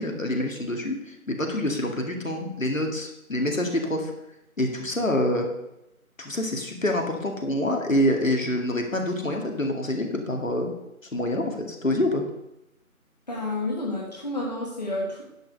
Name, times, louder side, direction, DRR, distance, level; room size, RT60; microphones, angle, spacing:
voice 1, 0.0-4.1 4.6-5.5 6.2-10.7 11.1-12.2, left 1 dB, 65° left, 3 dB, 2.4 m, -26 dB
voice 2, 13.3-15.2, left 2 dB, 30° left, -3 dB, 1.6 m, -30 dB
10.5 x 5.8 x 6.7 m, 0.87 s
figure-of-eight pair, 165°, 42 cm